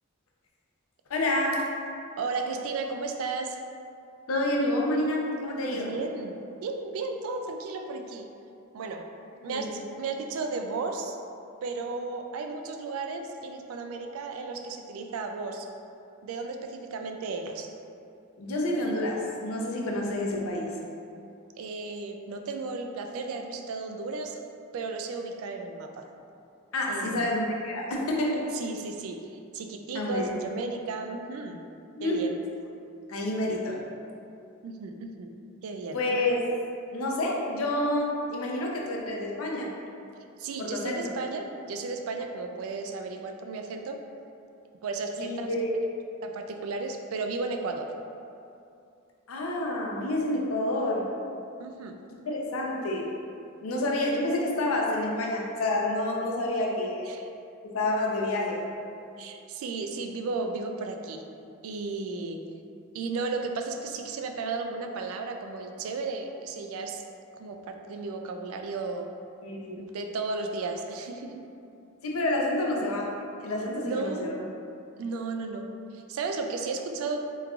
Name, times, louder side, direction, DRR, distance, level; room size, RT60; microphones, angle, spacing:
voice 1, 1.1-1.7 4.3-5.9 9.4-9.8 18.4-20.8 26.7-28.5 29.9-30.4 32.0-32.3 33.1-33.7 35.9-36.5 36.9-39.7 40.6-41.1 45.2-45.7 49.3-51.1 52.3-53.1 53.6-57.1 57.6-58.6 69.4-69.8 72.0-74.3, left 1 dB, 90° left, -2 dB, 0.5 m, -28 dB
voice 2, 2.2-3.6 5.7-8.3 8.7-9.1 9.4-11.2 11.6-15.7 16.2-17.7 21.6-24.4 24.7-26.1 26.9-27.3 28.5-29.3 29.5-31.7 32.0-32.4 34.6-35.3 35.6-36.0 40.4-44.0 44.8-45.5 46.2-47.9 51.6-52.0 57.1-57.3 59.2-61.3 61.6-62.5 62.9-67.0 67.4-69.1 69.8-71.5 73.8-74.5 75.0-77.2, right 3 dB, 85° right, 4 dB, 0.3 m, -34 dB
3.5 x 3.1 x 2.4 m, 2.6 s
head